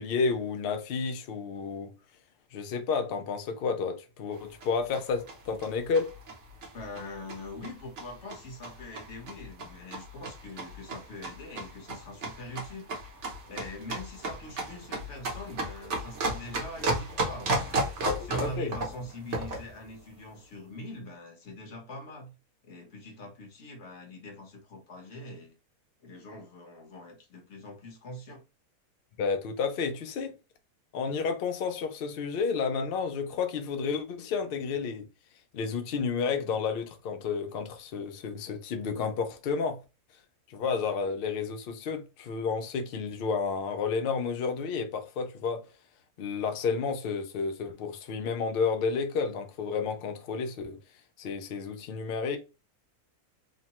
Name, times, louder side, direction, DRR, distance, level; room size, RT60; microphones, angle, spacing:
voice 1, 0.0-1.9 2.5-6.1 18.0-18.7 29.2-30.3 30.9-35.1 35.5-39.8 40.5-45.7 46.2-50.8 51.2-52.4, left 5 dB, 90° left, 0.5 m, -31 dB
sound 1, 4.3-19.7, right 2 dB, 55° right, 1.0 m, -35 dB
voice 2, 6.7-12.9 13.4-22.3 22.6-25.5 26.0-28.4, left 1 dB, 55° left, 1.2 m, -43 dB
3.0 x 2.1 x 2.8 m
omnidirectional pair, 1.6 m